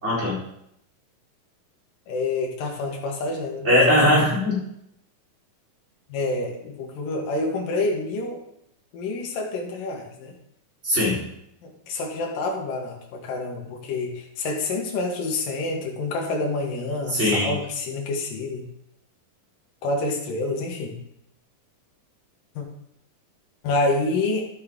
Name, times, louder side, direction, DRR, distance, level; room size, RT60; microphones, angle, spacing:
voice 1, 0.0-0.4 3.6-4.6 10.8-11.2 17.1-17.5, left 1 dB, 20° right, -6 dB, 4.0 m, -20 dB
voice 2, 2.1-3.7 6.1-8.4 8.9-10.3 11.6-18.6 19.8-21.0 22.6-22.7 23.6-24.5, left 2 dB, 75° left, 0 dB, 3.2 m, -27 dB
12.0 x 7.6 x 3.7 m, 0.76 s
omnidirectional pair, 4.0 m